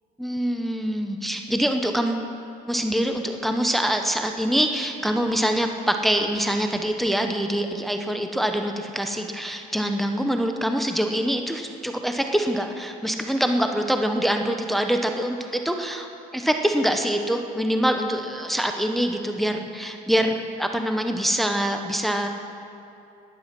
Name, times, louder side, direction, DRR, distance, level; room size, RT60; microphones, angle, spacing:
voice 1, 0.2-2.3 2.7-16.1 16.3-22.3, equal, ahead, 4 dB, 0.9 m, -24 dB
14.0 x 11.0 x 6.1 m, 2.7 s
cardioid pair, 110°, 17 cm